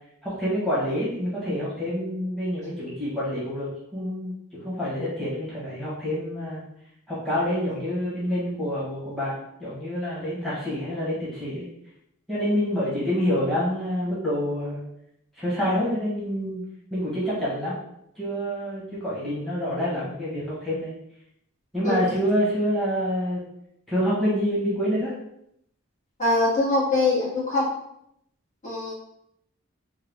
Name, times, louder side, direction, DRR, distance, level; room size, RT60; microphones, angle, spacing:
voice 1, 0.2-4.3 4.6-6.6 7.1-9.3 9.6-11.6 12.3-14.8 15.4-16.6 16.9-17.8 18.2-20.9 21.7-23.4 23.9-25.1, equal, ahead, -9 dB, 1.2 m, -27 dB
voice 2, 26.2-27.7 28.6-28.9, left 2 dB, 40° left, -8 dB, 1.5 m, -23 dB
3.7 x 2.3 x 3.4 m, 0.75 s
head